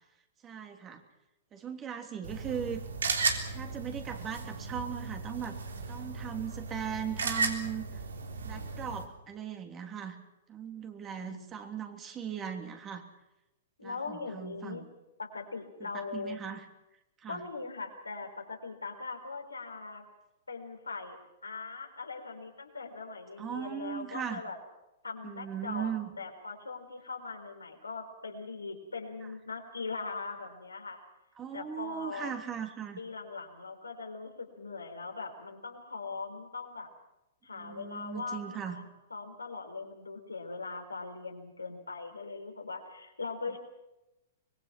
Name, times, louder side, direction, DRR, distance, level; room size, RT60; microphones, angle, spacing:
voice 1, 0.4-1.0 1.5-2.8 3.5-5.6 5.9-8.0 8.4-10.2 10.5-13.0 13.8-14.9 15.8-16.6 17.2-17.4 23.4-24.4 25.2-26.1 31.4-33.0 37.5-38.8, right 8 dB, 25° right, 5 dB, 3.2 m, -38 dB
sound 1, 2.2-9.0, right 4 dB, 75° right, 3.5 m, -35 dB
voice 2, 11.2-11.5 13.8-14.8 15.2-16.4 17.3-20.0 20.5-21.2 21.4-24.6 25.0-25.9 26.2-31.0 31.5-32.3 33.0-36.9 37.4-43.6, left 4 dB, 85° left, 3 dB, 4.4 m, -40 dB
25.0 x 21.5 x 6.0 m, 0.95 s
figure-of-eight pair, 110°, 0 cm